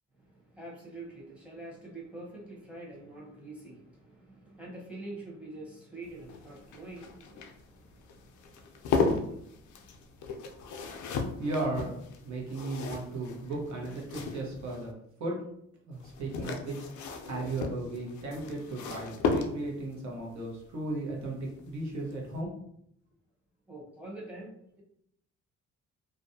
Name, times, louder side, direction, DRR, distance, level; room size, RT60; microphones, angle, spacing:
voice 1, 0.1-11.4 23.7-24.5, right 2 dB, 5° right, -3 dB, 0.9 m, -47 dB
sound 1, 6.0-14.9 16.0-19.9 21.5-21.8 22.1-22.2, left 4 dB, 75° left, 0.5 m, -35 dB
voice 2, 11.4-14.9 15.2-15.4 15.9-16.8 17.2-22.5, right 2 dB, 65° right, -2 dB, 1.0 m, -35 dB
2.5 x 2.2 x 2.6 m, 0.73 s
cardioid pair, 90°, 30 cm